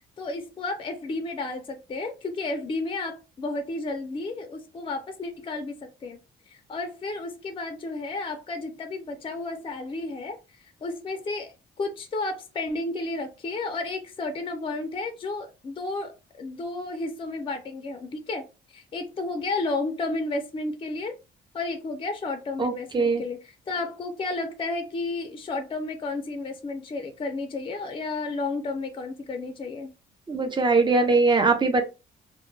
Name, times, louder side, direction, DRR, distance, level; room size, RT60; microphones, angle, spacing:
voice 1, 0.2-6.2 6.5-10.4 10.8-21.2 21.5-29.9, left 3 dB, 25° left, 0.5 m, -32 dB
voice 2, 22.6-23.2 30.3-31.8, right 3 dB, 25° right, 0.6 m, -21 dB
2.2 x 2.1 x 3.1 m
cardioid pair, 90°, 20 cm